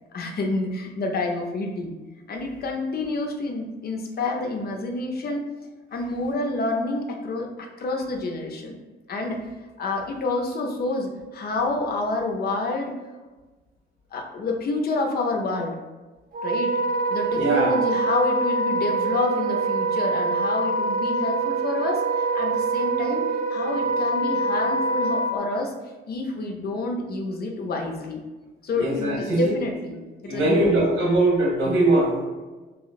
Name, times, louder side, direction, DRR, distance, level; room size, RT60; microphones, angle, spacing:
voice 1, 0.1-1.9 2.3-5.4 5.9-8.8 9.1-9.4 9.8-12.9 14.1-15.7 16.4-16.8 17.1-23.2 23.5-25.7 26.1-28.2 28.6-30.0 30.2-30.7, left 2 dB, 50° left, 2 dB, 0.6 m, -28 dB
Wind instrument woodwind instrument, 16.3-25.3, right 3 dB, 45° right, 0.5 m, -24 dB
voice 2, 17.3-17.7 28.7-29.4 30.2-32.3, right 2 dB, 85° right, -4 dB, 1.3 m, -21 dB
2.9 x 2.0 x 4.0 m, 1.2 s
cardioid pair, 90°, 20 cm